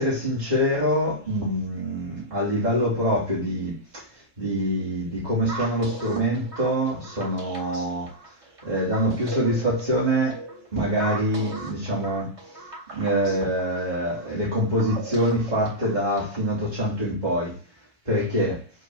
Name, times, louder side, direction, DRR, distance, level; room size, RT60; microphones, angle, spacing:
voice 1, 0.0-4.0 4.4-8.1 8.6-10.4 10.7-12.4 12.9-17.6 18.1-18.6, equal, 30° right, 3.6 m, -25 dB
sound 1, 5.5-16.5, right 2 dB, 50° right, 3.4 m, -39 dB
8.1 x 4.1 x 7.0 m
omnidirectional pair, 1.6 m